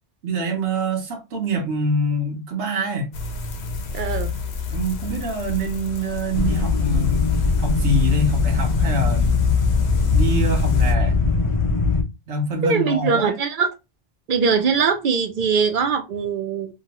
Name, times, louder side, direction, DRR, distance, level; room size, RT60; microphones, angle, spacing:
voice 1, 0.2-3.1 4.7-9.6 10.1-11.2 12.3-13.4, right 1 dB, 80° right, 1.1 m, -25 dB
sound 1, 3.1-10.9, left 2 dB, 70° left, 0.9 m, -31 dB
voice 2, 3.9-4.3 12.6-13.7 14.3-16.7, right 5 dB, 55° right, 0.6 m, -21 dB
sound 2, 6.3-12.0, left 4 dB, 40° left, 0.5 m, -20 dB
2.8 x 2.2 x 2.8 m
omnidirectional pair, 1.2 m